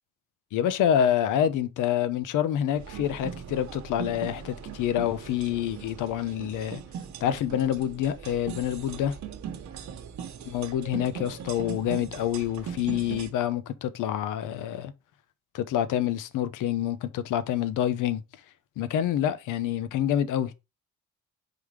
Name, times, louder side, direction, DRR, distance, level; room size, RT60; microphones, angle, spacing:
voice 1, 0.5-6.8 7.2-9.2 10.5-14.9 15.5-18.2 18.8-20.5, left 10 dB, 85° left, 0.8 m, -27 dB
sound 1, 2.7-13.3, right 8 dB, 70° right, 1.1 m, -40 dB
5.2 x 3.9 x 4.7 m
cardioid pair, 90°, 30 cm